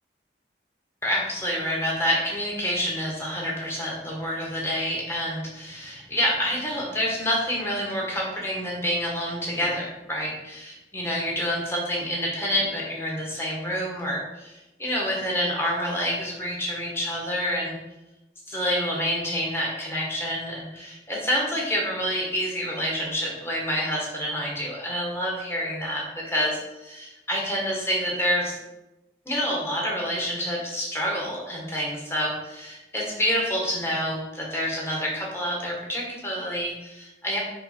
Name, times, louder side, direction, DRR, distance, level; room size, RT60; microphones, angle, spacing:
voice 1, 1.0-17.8 18.5-28.6 29.2-37.4, equal, 15° left, -3 dB, 1.5 m, -28 dB
5.6 x 4.7 x 4.4 m, 1.0 s
head